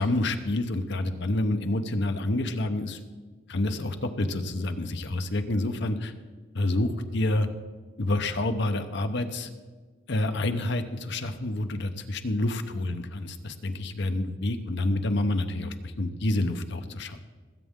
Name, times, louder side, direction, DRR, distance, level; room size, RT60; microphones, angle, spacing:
voice 1, 0.0-3.0 3.5-6.1 6.5-7.5 8.0-9.5 10.1-17.2, left 2 dB, 65° left, 8 dB, 0.9 m, -28 dB
19.5 x 8.5 x 3.7 m, 1.4 s
head